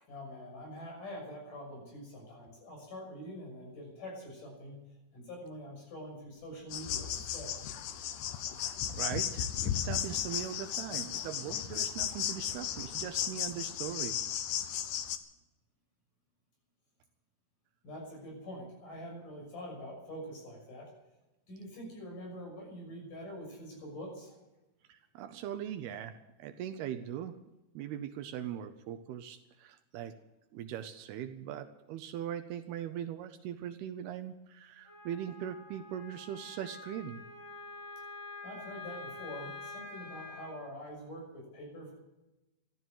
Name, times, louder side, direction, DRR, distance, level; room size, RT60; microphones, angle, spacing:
voice 1, 0.1-4.8 5.1-7.6 17.8-20.9 21.5-24.4 38.4-41.9, equal, 50° left, 0 dB, 7.9 m, -45 dB
sound 1, 6.3-6.6 6.9-7.0 8.9-10.8 12.3-14.1, equal, 10° right, 1.9 m, -55 dB
sound 2, 6.7-15.2, left 10 dB, 75° left, 1.9 m, -35 dB
voice 2, 8.6-14.2 24.9-27.4 27.7-30.2 30.5-37.2, right 10 dB, 75° right, 9 dB, 2.6 m, -40 dB
Wind instrument woodwind instrument, 34.8-40.5, left 3 dB, 30° left, 8.7 m, -46 dB
15.0 x 12.5 x 7.7 m, 0.98 s
omnidirectional pair, 4.9 m